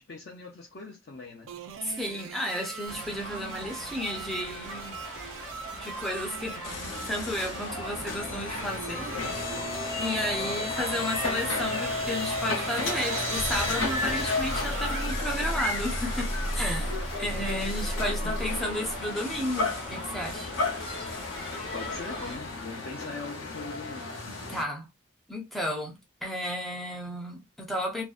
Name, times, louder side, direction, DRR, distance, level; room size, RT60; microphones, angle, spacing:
voice 1, 0.0-1.5 10.4-10.8 18.0-18.2 21.7-24.3, left 3 dB, 55° left, 0.4 m, -41 dB
sound 1, 1.5-15.1, right 8 dB, 85° right, 0.4 m, -42 dB
voice 2, 1.8-5.0 5.7-6.6 7.0-9.2 10.0-20.5 24.5-24.9 25.3-28.0, left 1 dB, ahead, 0.5 m, -33 dB
sound 2, 2.9-22.4, left 1 dB, 25° left, 0.9 m, -39 dB
sound 3, 6.6-24.6, left 2 dB, 85° left, 0.8 m, -33 dB
2.5 x 2.1 x 2.3 m
head